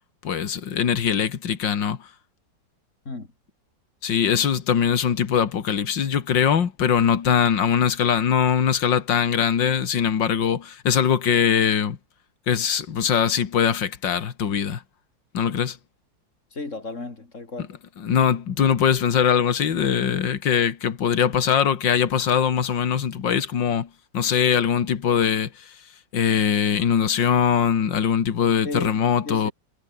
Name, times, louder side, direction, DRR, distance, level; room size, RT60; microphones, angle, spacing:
voice 1, 0.2-2.0 4.0-12.0 12.5-14.8 15.3-15.8 18.0-23.9 24.1-25.7 26.1-29.5, left 8 dB, 75° left, 2.5 m, -21 dB
voice 2, 16.5-17.7 28.6-29.5, left 3 dB, 40° left, 3.9 m, -34 dB
omnidirectional pair, 2.0 m